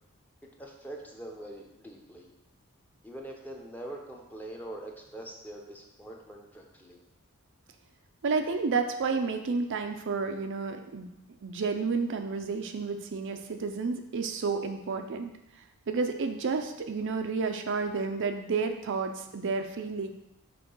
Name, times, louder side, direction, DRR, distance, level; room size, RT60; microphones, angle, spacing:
voice 1, 0.6-2.3 3.0-7.0, right 1 dB, 10° left, 0 dB, 0.8 m, -43 dB
voice 2, 8.2-11.1 11.4-15.3 15.9-20.1, right 4 dB, 60° right, 6 dB, 0.5 m, -31 dB
5.8 x 3.3 x 5.4 m, 0.84 s
head